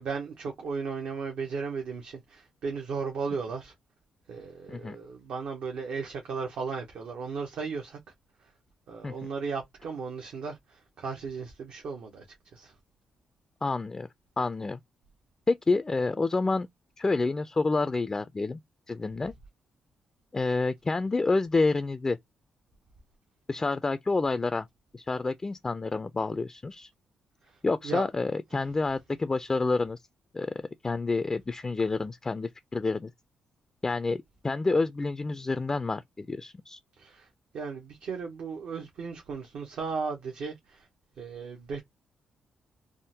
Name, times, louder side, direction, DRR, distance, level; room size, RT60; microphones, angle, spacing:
voice 1, 0.0-3.7 4.3-8.0 8.4-8.5 8.9-12.2 12.5-12.7 27.4-28.1 37.0-37.3 37.5-40.9 41.2-41.8, right 5 dB, 75° right, 0.7 m, -36 dB
voice 2, 13.6-14.1 14.4-14.8 15.5-16.7 17.0-18.6 18.9-19.3 20.3-22.2 23.5-24.7 24.9-26.9 27.6-30.0 30.3-33.1 33.8-36.8, left 3 dB, 25° left, 0.3 m, -28 dB
3.5 x 2.1 x 2.7 m
cardioid pair, 70°, 2 cm